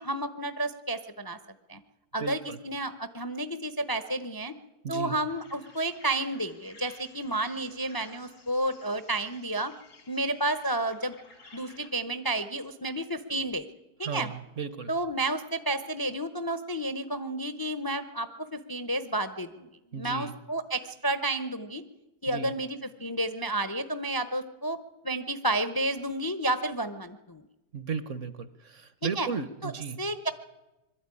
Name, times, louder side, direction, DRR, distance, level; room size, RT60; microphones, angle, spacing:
voice 1, 0.0-1.4 1.7-1.8 2.1-4.5 4.9-9.7 10.1-11.2 11.5-13.7 14.0-14.3 14.9-21.8 22.2-24.8 25.0-27.4 29.2-29.3 29.6-29.7 30.0-30.3, right 1 dB, 25° left, 11 dB, 0.5 m, -31 dB
voice 2, 2.2-2.6 4.8-5.2 14.0-14.9 19.9-20.4 22.3-22.5 27.7-30.0, right 5 dB, 55° right, 14 dB, 1.1 m, -35 dB
sound 1, 5.3-11.9, left 3 dB, 85° left, 2.7 m, -55 dB
21.5 x 13.0 x 9.7 m, 1.0 s
omnidirectional pair, 1.7 m